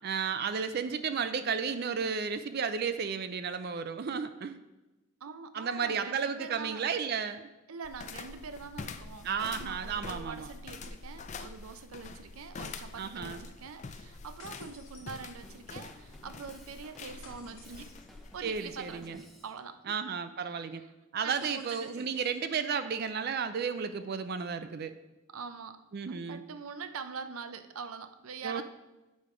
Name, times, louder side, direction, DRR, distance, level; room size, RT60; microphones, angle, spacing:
voice 1, 0.0-4.6 5.5-7.5 9.2-10.5 13.0-13.4 18.4-19.2 19.9-20.8 21.1-24.9 25.9-26.4 28.4-28.6, right 6 dB, 50° right, 10 dB, 0.4 m, -33 dB
voice 2, 5.2-6.9 7.7-9.3 9.6-18.0 18.3-20.0 21.2-22.2 25.3-25.8 26.1-28.6, right 5 dB, 90° right, 10 dB, 0.6 m, -44 dB
sound 1, 7.8-19.1, left 4 dB, 35° left, 0.4 m, -45 dB
sound 2, 14.4-15.7 17.2-18.2 21.3-22.5, left 4 dB, 70° left, 1.5 m, -55 dB
Drum kit, 15.4-19.6, equal, ahead, 0.7 m, -56 dB
8.6 x 5.2 x 4.8 m, 1.1 s
head